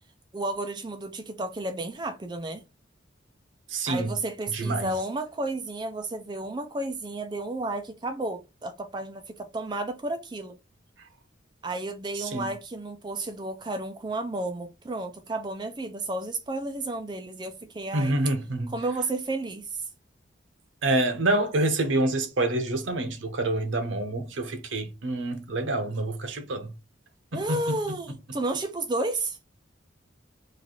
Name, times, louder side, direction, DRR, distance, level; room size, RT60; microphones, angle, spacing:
voice 1, 0.3-2.6 3.9-10.6 11.6-18.1 18.7-19.8 27.3-29.4, right 2 dB, 25° right, 0.4 m, -32 dB
voice 2, 3.7-4.1 4.5-4.9 12.1-12.5 17.9-18.7 20.8-26.7 27.3-27.8, right 2 dB, 90° right, 0.8 m, -27 dB
3.2 x 2.5 x 3.6 m
head